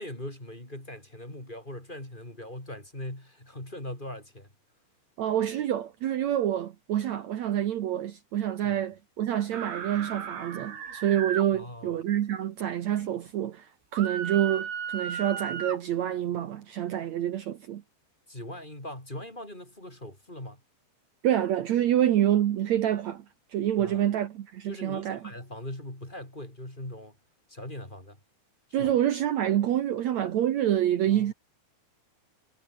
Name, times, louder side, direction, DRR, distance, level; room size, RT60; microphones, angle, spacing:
voice 1, 0.0-4.5 8.7-8.8 11.5-12.0 18.3-20.6 23.8-24.0 24.7-27.2 27.5-28.2 28.8-28.9 31.1-31.3, left 1 dB, 10° left, 5.5 m, -40 dB
voice 2, 5.2-17.8 21.2-23.2 23.5-25.2 28.7-31.3, right 11 dB, 80° right, 1.5 m, -27 dB
sound 1, 9.5-11.5 13.9-15.8, right 7 dB, 65° right, 5.6 m, -35 dB
omnidirectional pair, 5.1 m